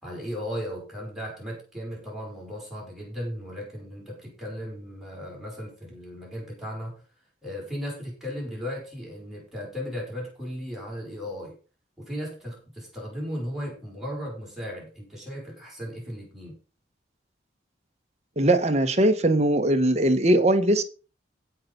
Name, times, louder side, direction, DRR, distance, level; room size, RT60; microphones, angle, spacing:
voice 1, 0.0-7.0 7.4-11.6 12.0-16.6, equal, ahead, -3 dB, 5.6 m, -36 dB
voice 2, 18.4-20.8, right 1 dB, 35° right, 7 dB, 1.3 m, -20 dB
15.5 x 5.8 x 5.3 m, 0.35 s
head